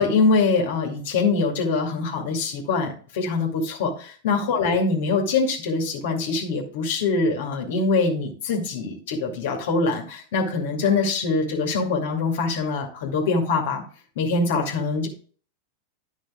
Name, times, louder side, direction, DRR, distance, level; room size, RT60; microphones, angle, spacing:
voice 1, 0.0-13.8 14.2-15.1, left 4 dB, 55° left, 1 dB, 2.5 m, -23 dB
11.5 x 6.3 x 3.8 m, 0.41 s
figure-of-eight pair, 90°, 0 cm